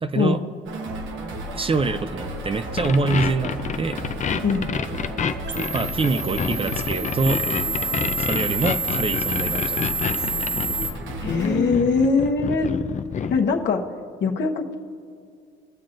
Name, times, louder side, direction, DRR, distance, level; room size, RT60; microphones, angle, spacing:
voice 1, 0.0-0.4 1.5-4.0 5.7-7.4 8.2-9.8, right 3 dB, 30° right, 10 dB, 0.5 m, -25 dB
sound 1, 0.7-12.7, right 1 dB, 80° right, 1.2 m, -34 dB
sound 2, 2.7-13.4, left 7 dB, 40° left, 0.5 m, -28 dB
sound 3, 5.4-10.9, right 3 dB, 60° right, 1.0 m, -28 dB
voice 2, 11.2-12.7 13.3-13.9 14.2-14.7, left 4 dB, 65° left, 3 dB, 1.1 m, -21 dB
21.0 x 7.3 x 2.6 m, 2.3 s
cardioid pair, 90°, 20 cm